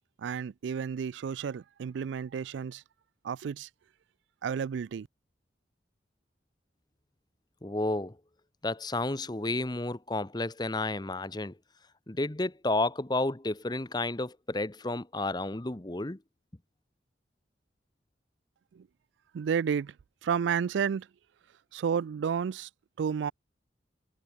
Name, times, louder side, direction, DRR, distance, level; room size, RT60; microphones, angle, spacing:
voice 1, 0.2-2.8 3.2-3.7 4.4-5.1 18.8-18.9 19.3-19.9 20.2-21.1 21.7-22.7 23.0-23.3, right 7 dB, 75° right, 0.3 m, -31 dB
voice 2, 7.6-8.2 8.6-11.6 12.1-16.2, left 2 dB, 20° left, 0.9 m, -31 dB
head